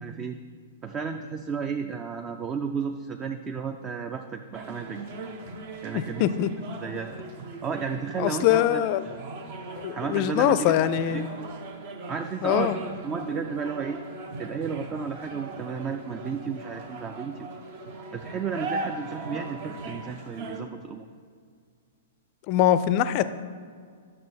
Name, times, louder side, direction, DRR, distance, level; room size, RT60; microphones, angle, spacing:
voice 1, 0.0-0.4 0.8-5.1 5.8-6.3 6.8-7.2 7.6-9.2 9.9-10.8 11.1-11.5 12.1-14.0 14.4-17.5 18.1-21.1, right 6 dB, 25° right, 7 dB, 0.4 m, -33 dB
sound 1, 4.5-20.6, right 3 dB, 45° right, 0.9 m, -39 dB
voice 2, 5.9-6.5 8.2-9.0 9.8-11.3 12.4-12.8 22.5-23.3, left 12 dB, 40° left, 14 dB, 0.4 m, -23 dB
10.0 x 6.4 x 4.1 m, 2.1 s
figure-of-eight pair, 110°, 0 cm